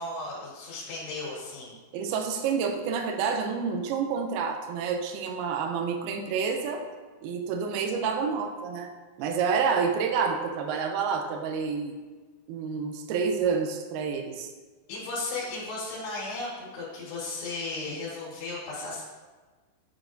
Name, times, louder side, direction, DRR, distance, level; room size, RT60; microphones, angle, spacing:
voice 1, 0.0-1.8 14.9-19.0, left 2 dB, 80° left, -7 dB, 3.6 m, -35 dB
voice 2, 1.9-6.8 7.2-8.9 9.2-11.9 12.5-14.5, right 6 dB, 80° right, 4 dB, 2.4 m, -28 dB
8.9 x 5.1 x 2.5 m, 1.3 s
omnidirectional pair, 4.8 m